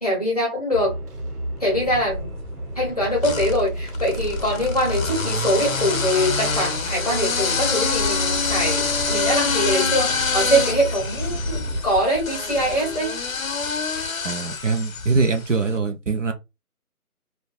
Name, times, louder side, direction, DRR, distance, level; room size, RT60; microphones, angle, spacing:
voice 1, 0.0-1.0 1.6-2.3 2.8-13.2, equal, 25° left, 0.7 m, -23 dB
sound 1, 0.7-11.8, right 1 dB, 80° right, 1.0 m, -31 dB
sound 2, 1.8-2.5 3.2-15.5, left 5 dB, 65° left, 0.6 m, -26 dB
voice 2, 14.2-16.3, right 4 dB, 55° right, 0.6 m, -23 dB
2.5 x 2.2 x 2.3 m
figure-of-eight pair, 160°, 45 cm